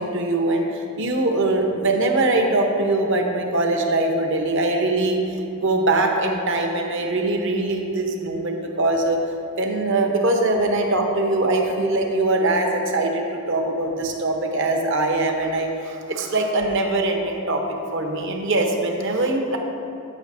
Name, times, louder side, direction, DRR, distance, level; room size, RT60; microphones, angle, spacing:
voice 1, 0.0-5.2 5.6-9.2 9.6-19.6, right 2 dB, 55° right, 3 dB, 0.9 m, -22 dB
13.5 x 6.1 x 2.6 m, 2.9 s
head